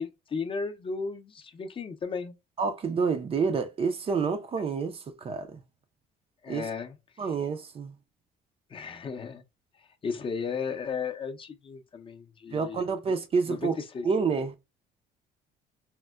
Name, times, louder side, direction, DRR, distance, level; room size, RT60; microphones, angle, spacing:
voice 1, 0.0-2.3 6.4-7.3 8.7-9.4 10.0-13.1 13.5-14.1, left 5 dB, 30° left, 0.5 m, -35 dB
voice 2, 2.6-5.6 6.5-6.7 7.2-7.9 12.5-13.7 14.0-14.5, right 5 dB, 35° right, 0.4 m, -28 dB
4.3 x 2.1 x 2.2 m
cardioid pair, 110°, 17 cm